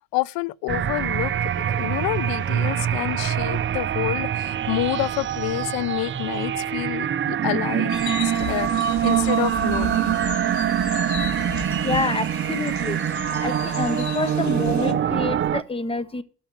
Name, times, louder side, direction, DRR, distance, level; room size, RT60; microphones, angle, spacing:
voice 1, 0.1-7.9 8.5-10.2, left 18 dB, 80° left, 0.6 m, -28 dB
sound 1, 0.7-15.6, right 10 dB, 35° right, 0.6 m, -24 dB
sound 2, 7.9-14.9, left 6 dB, 55° left, 2.0 m, -35 dB
voice 2, 11.8-13.0 13.4-16.2, left 3 dB, 15° left, 1.2 m, -27 dB
12.5 x 5.0 x 8.9 m
cardioid pair, 105°, 35 cm